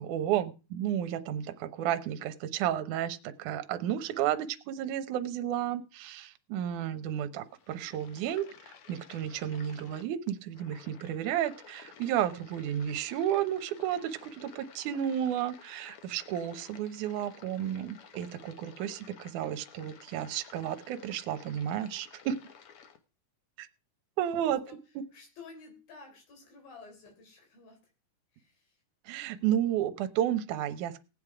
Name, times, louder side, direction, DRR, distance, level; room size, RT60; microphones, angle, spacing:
voice 1, 0.0-22.4 23.6-23.7 24.2-24.6 25.0-25.1 29.1-31.0, right 10 dB, 70° right, 10 dB, 2.1 m, -32 dB
sound 1, 7.4-23.0, left 7 dB, 65° left, 1.4 m, -54 dB
voice 2, 25.1-27.8 28.3-28.8, left 4 dB, 80° left, 3 dB, 5.4 m, -51 dB
18.0 x 8.2 x 4.9 m, 0.33 s
omnidirectional pair, 4.1 m